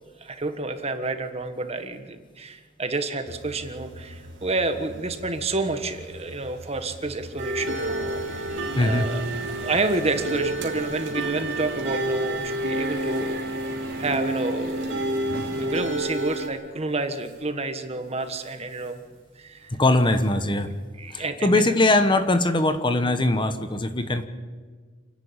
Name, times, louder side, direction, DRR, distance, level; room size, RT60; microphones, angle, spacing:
voice 1, 0.2-9.2 9.6-13.4 14.0-14.9 15.5-19.0 19.4-19.7 21.0-21.6, right 3 dB, 30° right, 8 dB, 1.5 m, -29 dB
sound 1, 3.2-10.4 12.9-14.2 14.8-16.7 17.1-17.5 18.0-19.2 19.6-20.6, right 1 dB, 85° right, 4.2 m, -46 dB
sound 2, 7.4-16.5, right 1 dB, 70° right, 2.7 m, -29 dB
Crowd, 7.6-15.9, right 2 dB, 50° right, 3.4 m, -39 dB
voice 2, 8.7-9.1 19.7-20.7 21.1-24.3, left 2 dB, 25° left, 9 dB, 1.1 m, -21 dB
28.5 x 10.5 x 8.9 m, 1.5 s
head